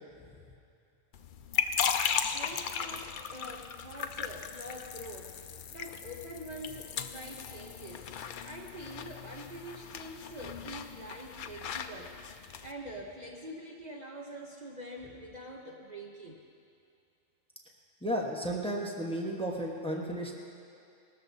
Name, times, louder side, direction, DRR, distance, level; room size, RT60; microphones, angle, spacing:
sound 1, 1.1-12.7, left 7 dB, 60° left, 0.6 m, -37 dB
voice 1, 2.3-8.1 8.4-12.2 12.6-16.4, right 1 dB, 40° right, -2 dB, 0.9 m, -45 dB
voice 2, 18.0-20.3, right 1 dB, 5° left, -2 dB, 1.1 m, -33 dB
19.5 x 13.0 x 2.7 m, 2.5 s
omnidirectional pair, 1.2 m